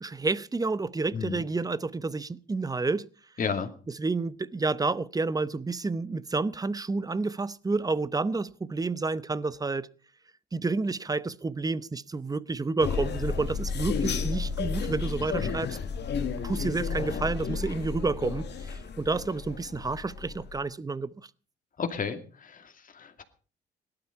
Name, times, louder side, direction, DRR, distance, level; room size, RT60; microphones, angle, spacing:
voice 1, 0.0-3.1 4.0-9.9 10.5-15.8 16.4-21.1, right 3 dB, 20° right, 0.7 m, -30 dB
voice 2, 1.1-1.5 3.4-3.7 15.4-15.6 21.8-23.2, left 6 dB, 45° left, 2.5 m, -33 dB
sound 1, 12.8-20.6, left 5 dB, 60° left, 1.7 m, -32 dB
18.0 x 12.0 x 5.6 m
cardioid pair, 90°, 20 cm